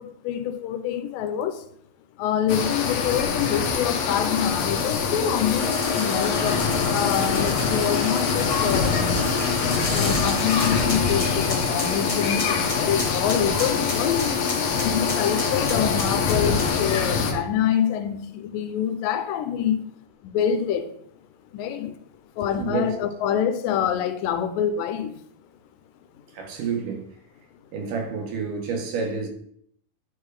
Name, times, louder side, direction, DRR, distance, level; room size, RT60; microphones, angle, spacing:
voice 1, 0.0-1.7 2.2-9.1 9.9-14.5 14.8-19.9 20.2-20.9 21.5-21.9 22.4-25.2, left 9 dB, 85° left, 2.3 m, -26 dB
sound 1, 2.5-17.3, left 6 dB, 65° left, 1.8 m, -25 dB
sound 2, 5.6-16.8, left 4 dB, 40° left, 0.4 m, -29 dB
voice 2, 22.6-22.9 26.3-27.1 27.7-29.3, right 5 dB, 75° right, 2.7 m, -29 dB
9.9 x 3.7 x 4.7 m
omnidirectional pair, 3.9 m